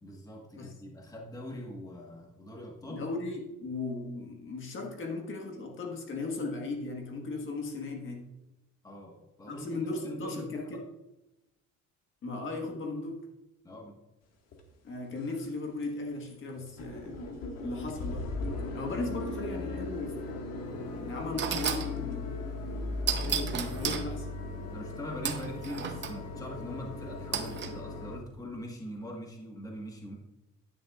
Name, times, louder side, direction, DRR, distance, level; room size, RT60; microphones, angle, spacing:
voice 1, 0.0-3.0 8.8-10.8 13.6-14.0 24.7-30.2, left 1 dB, 10° left, 0 dB, 1.4 m, -42 dB
voice 2, 2.9-8.3 9.5-10.8 12.2-13.2 14.8-17.2 17.6-18.3 18.7-20.4 21.0-22.3 23.2-24.3, left 3 dB, 45° left, 2 dB, 1.6 m, -37 dB
sound 1, 14.5-14.6 15.1-15.5 15.8-15.9 16.2-16.3 16.6-28.2, left 2 dB, 60° left, 1.8 m, -38 dB
sound 2, 20.7-20.8 21.4-21.9 23.1-24.1 25.2-26.2 27.3-27.7, right 8 dB, 40° right, 0.8 m, -33 dB
10.5 x 9.9 x 2.4 m, 0.97 s
cardioid pair, 145°, 30 cm